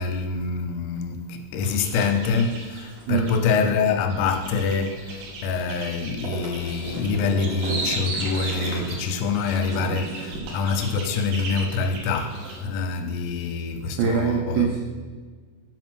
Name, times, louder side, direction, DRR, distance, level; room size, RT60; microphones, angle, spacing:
voice 1, 0.0-14.7, left 5 dB, 85° left, 3.4 m, -25 dB
sound 1, 1.6-3.5 4.1-12.6, right 3 dB, 70° right, 2.6 m, -34 dB
voice 2, 14.0-14.8, right 6 dB, 85° right, 2.5 m, -23 dB
7.7 x 5.1 x 6.1 m
omnidirectional pair, 5.9 m